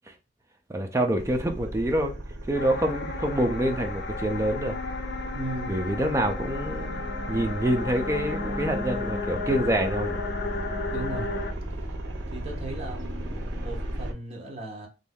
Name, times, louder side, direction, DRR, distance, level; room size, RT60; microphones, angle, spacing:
voice 1, 0.7-2.1 2.5-4.8 5.7-7.0 7.3-10.2, right 1 dB, 15° right, 0.4 m, -26 dB
sound 1, 1.2-14.1, right 1 dB, 75° right, 0.6 m, -36 dB
sound 2, 2.5-11.5, left 3 dB, 60° left, 0.6 m, -33 dB
voice 2, 5.3-5.7 10.9-11.3 12.3-14.9, right 2 dB, 35° right, 0.8 m, -37 dB
2.5 x 2.2 x 3.4 m
head